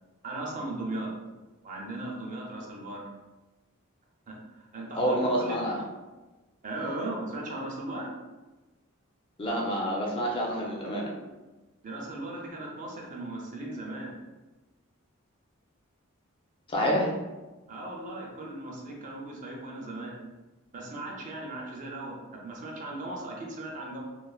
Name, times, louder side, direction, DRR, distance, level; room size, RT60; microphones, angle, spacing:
voice 1, 0.2-1.1 1.6-3.1 4.3-5.6 6.6-8.1 11.8-14.2 17.7-20.2 20.7-24.0, right 2 dB, 35° right, -2 dB, 0.5 m, -37 dB
voice 2, 5.0-5.8 9.4-11.1 16.7-17.1, equal, 25° left, -2 dB, 0.5 m, -27 dB
3.1 x 2.0 x 2.3 m, 1.2 s
head